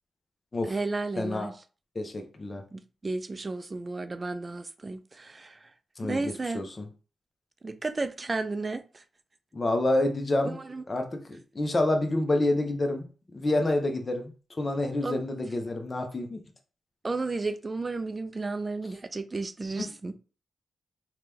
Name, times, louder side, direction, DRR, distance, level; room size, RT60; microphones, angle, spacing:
voice 1, 0.6-1.5 2.7-5.7 6.0-6.6 7.6-9.0 10.4-10.8 15.0-15.2 17.0-20.2, right 3 dB, 35° right, 0.4 m, -33 dB
voice 2, 1.2-1.5 2.0-2.6 6.0-6.2 6.5-6.9 9.5-10.6 10.9-11.2 11.5-13.1 13.3-14.3 14.6-16.4 19.8-19.9, left 2 dB, 35° left, 0.7 m, -27 dB
2.9 x 2.2 x 3.4 m
cardioid pair, 65°, 0 cm